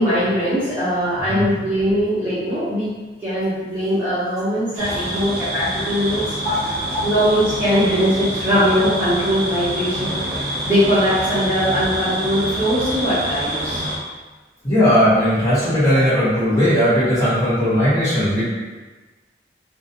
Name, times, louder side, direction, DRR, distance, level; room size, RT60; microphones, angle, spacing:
voice 1, 0.0-2.9 3.2-6.3 7.0-13.8, equal, 10° right, -14 dB, 0.6 m, -20 dB
sound 1, 4.8-14.0, right 1 dB, 55° right, 0.4 m, -26 dB
voice 2, 6.4-7.0 14.6-18.5, equal, 15° left, -12 dB, 1.0 m, -17 dB
2.4 x 2.1 x 2.7 m, 1.3 s
head